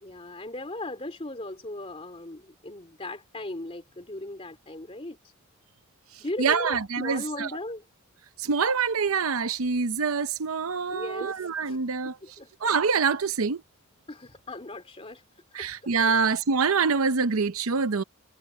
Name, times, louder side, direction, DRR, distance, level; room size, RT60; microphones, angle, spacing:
voice 1, 0.0-5.3 6.2-7.8 10.9-11.8 12.2-12.5 14.1-15.2 15.5-16.3, left 1 dB, 30° left, 2.9 m, -38 dB
voice 2, 6.1-7.5 8.4-12.2 12.6-13.6 15.5-18.0, right 5 dB, 90° right, 0.7 m, -25 dB
head